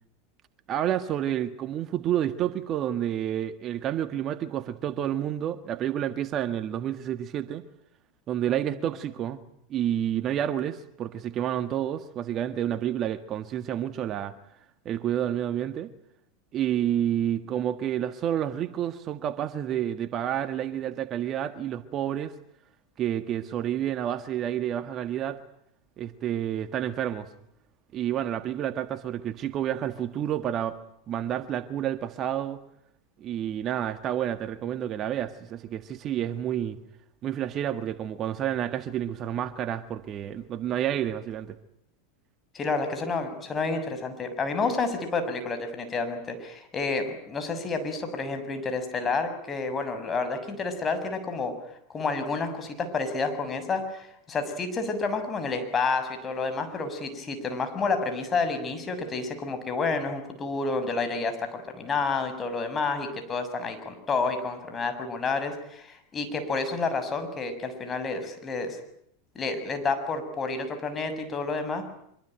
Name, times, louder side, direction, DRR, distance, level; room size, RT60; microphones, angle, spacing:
voice 1, 0.7-7.6 8.3-9.4 9.7-14.3 14.8-15.9 16.5-22.3 23.0-25.4 26.0-27.3 27.9-30.8 31.1-32.6 33.2-36.8 37.2-41.6, right 10 dB, 40° right, 1.6 m, -29 dB
voice 2, 42.5-51.5 51.9-68.8 69.3-71.8, left 4 dB, 25° left, 6.8 m, -29 dB
25.0 x 23.5 x 9.1 m
hypercardioid pair, 90°, 0 cm